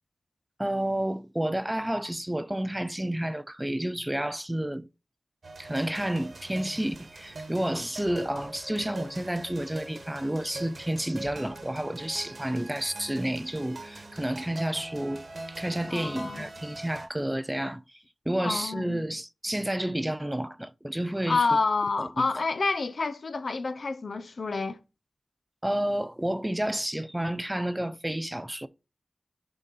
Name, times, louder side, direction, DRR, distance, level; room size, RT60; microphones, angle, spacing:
voice 1, 0.6-4.9 5.6-21.4 22.0-22.4 25.6-28.7, right 1 dB, 10° right, 0.3 m, -30 dB
sound 1, 5.4-17.1, right 2 dB, 65° right, 1.0 m, -43 dB
voice 2, 15.9-16.5 18.4-19.0 21.3-24.8, left 4 dB, 70° left, 0.5 m, -28 dB
7.3 x 3.9 x 3.9 m
wide cardioid pair, 75°, 0 cm